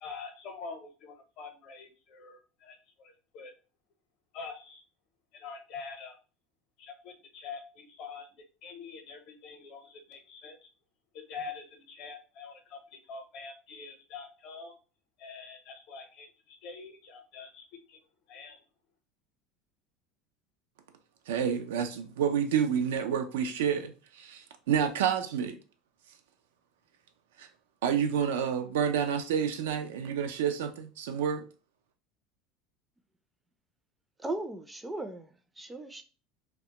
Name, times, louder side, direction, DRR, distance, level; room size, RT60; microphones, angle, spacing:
voice 1, 0.0-3.5 4.3-4.8 5.3-6.2 6.8-10.7 11.1-14.8 15.2-18.0 18.3-18.6, left 5 dB, 60° left, 0.7 m, -45 dB
voice 2, 21.3-25.6 27.4-27.5 27.8-31.5, right 8 dB, 85° right, 0.3 m, -29 dB
voice 3, 34.2-35.3 35.6-36.0, right 2 dB, 15° right, 0.4 m, -37 dB
2.1 x 2.0 x 2.9 m
hypercardioid pair, 95°, 0 cm